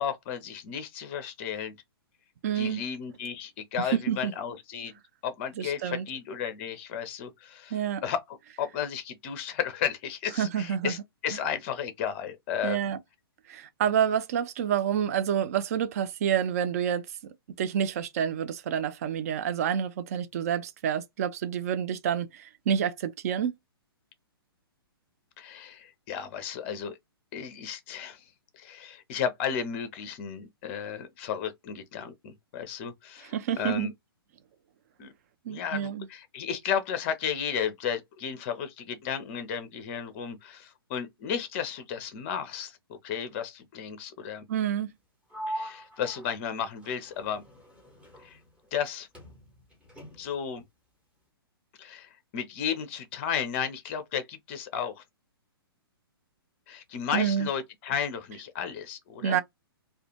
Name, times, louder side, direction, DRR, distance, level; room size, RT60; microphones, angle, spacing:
voice 1, 0.0-1.7 2.5-4.9 5.2-7.8 8.0-11.0 11.2-12.8 25.4-27.0 27.3-28.2 28.5-33.9 35.0-35.1 35.5-44.4 45.5-47.4 48.2-48.4 48.7-49.1 50.2-50.6 51.8-55.0 56.7-59.4, left 8 dB, 30° left, 0.5 m, -33 dB
voice 2, 2.4-2.8 3.9-4.3 5.6-6.1 7.7-8.0 10.4-10.9 12.6-13.0 13.5-23.5 33.2-33.9 35.5-36.1 44.5-44.9 57.1-57.5 59.2-59.4, right 9 dB, 40° right, 0.4 m, -28 dB
Sliding door, 45.3-48.9 49.1-50.5, right 1 dB, 10° right, 0.9 m, -42 dB
2.4 x 2.2 x 2.8 m
figure-of-eight pair, 120°, 13 cm